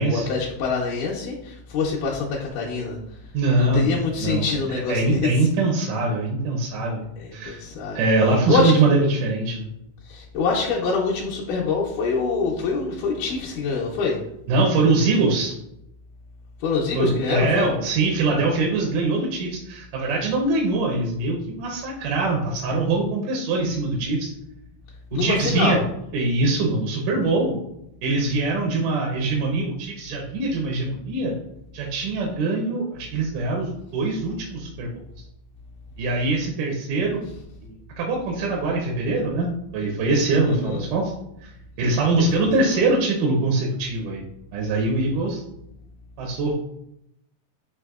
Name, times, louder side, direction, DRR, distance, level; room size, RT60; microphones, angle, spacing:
voice 1, 0.0-3.0 3.6-5.5 7.2-8.0 8.5-8.9 10.1-14.2 16.6-17.7 25.1-25.8 40.4-40.8 42.2-42.5, left 4 dB, 80° left, -4 dB, 2.0 m, -25 dB
voice 2, 3.3-7.0 7.3-7.6 8.0-9.7 14.5-15.5 16.9-24.3 25.1-25.8 26.1-27.5 28.0-31.3 31.7-35.0 36.0-37.2 37.6-41.1 41.4-41.5 41.8-44.2 44.5-45.4 46.2-46.5, right 3 dB, 80° right, 0 dB, 2.0 m, -23 dB
6.0 x 2.7 x 2.3 m, 0.80 s
omnidirectional pair, 4.0 m